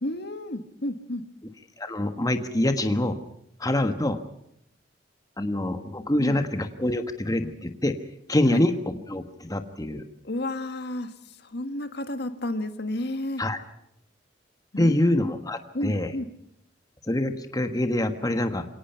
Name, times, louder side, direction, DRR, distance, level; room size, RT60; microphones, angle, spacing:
voice 1, 0.0-1.2 6.2-6.4 8.5-8.6 10.2-11.1 11.4-13.4 14.7-15.0 15.7-16.3, left 1 dB, 65° left, 9 dB, 1.6 m, -31 dB
voice 2, 1.8-3.2 3.6-4.2 5.4-7.9 8.3-10.0 13.4-13.6 14.8-16.1 17.1-18.7, left 1 dB, 20° left, 7 dB, 1.4 m, -25 dB
28.0 x 18.0 x 5.7 m, 0.76 s
head